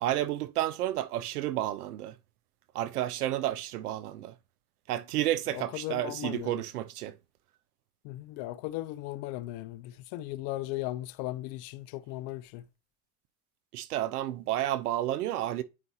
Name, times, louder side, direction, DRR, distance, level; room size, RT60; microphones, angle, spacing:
voice 1, 0.0-2.1 2.7-4.3 4.9-7.1 13.7-15.6, right 13 dB, 85° right, 0.8 m, -31 dB
voice 2, 5.5-6.6 8.0-12.6, left 16 dB, 55° left, 0.9 m, -37 dB
9.6 x 4.9 x 2.8 m
hypercardioid pair, 100°, 44 cm